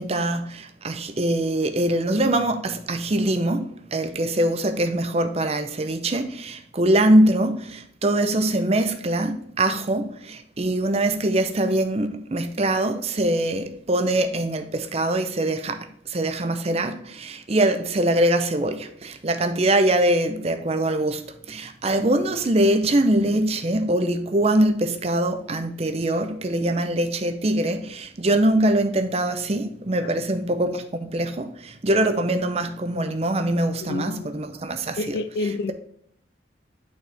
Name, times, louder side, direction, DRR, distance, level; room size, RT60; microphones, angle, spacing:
voice 1, 0.0-21.2 21.5-35.1, right 1 dB, 35° right, 0.6 m, -23 dB
voice 2, 33.8-34.3 35.0-35.7, left 3 dB, 55° left, 0.3 m, -29 dB
8.8 x 4.3 x 3.4 m
head